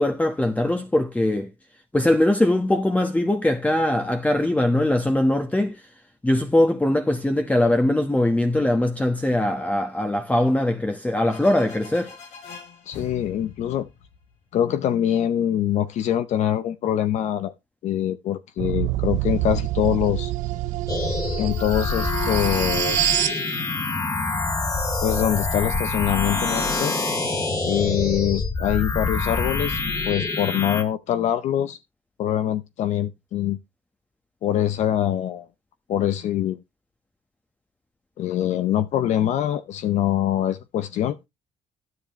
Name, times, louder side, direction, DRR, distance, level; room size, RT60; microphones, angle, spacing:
voice 1, 0.0-1.5 1.9-5.8 6.2-12.1, left 1 dB, 10° left, 1.2 m, -21 dB
sound 1, 11.3-14.9, left 5 dB, 85° left, 4.8 m, -44 dB
voice 2, 12.9-13.9 14.5-17.5 17.8-20.3 21.4-23.4 25.0-26.9 27.6-31.8 32.2-33.6 34.4-35.5 35.9-36.6 38.2-41.2, left 11 dB, 70° left, 0.7 m, -24 dB
sound 2, 18.6-23.4, right 17 dB, 85° right, 0.5 m, -26 dB
sound 3, 20.9-30.8, left 3 dB, 25° left, 2.3 m, -26 dB
10.5 x 9.5 x 3.1 m
supercardioid pair, 75°, 12 cm